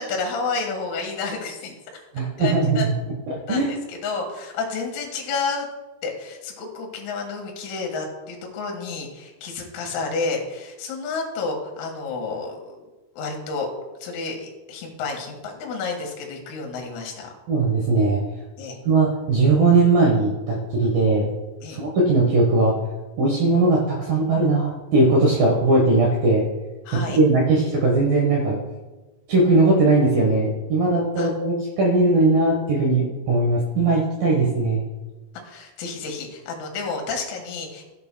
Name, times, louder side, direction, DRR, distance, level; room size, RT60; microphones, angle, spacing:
voice 1, 0.0-1.8 2.4-2.9 3.5-5.7 6.0-12.8 13.1-13.7 14.0-17.3 18.6-18.8 21.6-21.8 26.9-27.2 31.2-31.3 35.4-37.8, left 4 dB, 80° left, 1 dB, 4.3 m, -30 dB
voice 2, 2.1-2.9 3.3-3.7 17.5-18.2 18.9-21.3 21.7-22.7 23.2-26.4 27.1-28.6 29.3-34.8, right 2 dB, 70° right, -2 dB, 2.2 m, -19 dB
15.0 x 8.7 x 2.2 m, 1.2 s
omnidirectional pair, 6.0 m